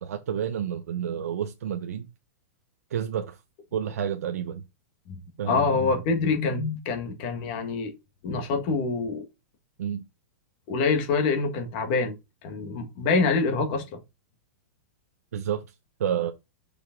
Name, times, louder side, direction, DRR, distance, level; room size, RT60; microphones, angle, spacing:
voice 1, 0.0-2.1 2.9-3.4 3.7-4.6 5.4-5.6 9.8-10.0 15.3-15.6 16.0-16.3, right 9 dB, 85° right, 0.9 m, -29 dB
voice 2, 5.5-7.9 8.2-9.2 10.7-12.1 12.4-14.0, left 4 dB, 35° left, 1.7 m, -25 dB
6.4 x 5.2 x 3.7 m
supercardioid pair, 170°, 8 cm